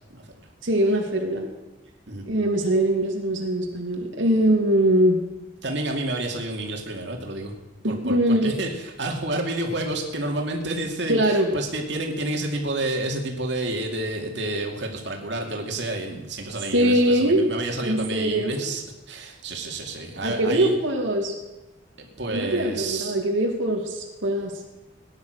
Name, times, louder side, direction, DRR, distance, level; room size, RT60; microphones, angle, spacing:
voice 1, 0.6-1.5 2.3-5.2 7.8-8.6 11.1-11.5 16.7-17.5 17.8-18.6 20.2-21.4 22.3-24.6, right 1 dB, 85° right, 0 dB, 2.2 m, -22 dB
voice 2, 5.6-7.5 7.9-18.8 19.1-20.7 22.0-23.2, right 2 dB, 65° right, 1 dB, 2.5 m, -29 dB
17.5 x 10.5 x 6.5 m, 1.1 s
head